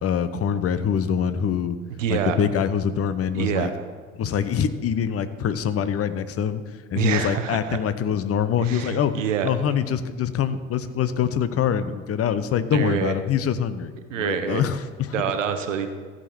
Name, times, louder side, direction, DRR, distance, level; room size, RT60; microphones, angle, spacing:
voice 1, 0.0-1.8 2.1-3.7 4.2-6.6 6.9-9.2 9.4-15.1, left 8 dB, 40° left, 13 dB, 0.8 m, -24 dB
voice 2, 1.9-2.4 3.3-3.7 6.9-7.8 8.6-9.5 12.7-13.2 14.1-14.6 15.1-15.9, right 8 dB, 85° right, 7 dB, 1.0 m, -26 dB
14.5 x 5.2 x 5.9 m, 1.5 s
hypercardioid pair, 60°, 37 cm